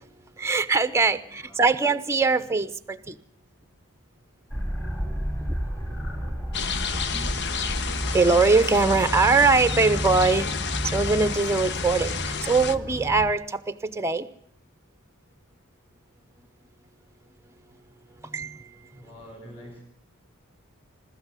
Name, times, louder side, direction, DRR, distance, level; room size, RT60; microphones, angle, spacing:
voice 1, 0.4-3.2 8.1-10.5 10.9-14.2 18.3-18.6, right 4 dB, 10° right, 11 dB, 0.8 m, -22 dB
voice 2, 1.1-1.9 18.9-19.8, equal, 25° left, 2 dB, 7.6 m, -47 dB
sound 1, 4.5-13.3, equal, 10° left, 2.7 m, -31 dB
sound 2, 6.5-12.8, left 6 dB, 50° left, 0.8 m, -31 dB
24.5 x 13.0 x 8.3 m, 0.71 s
head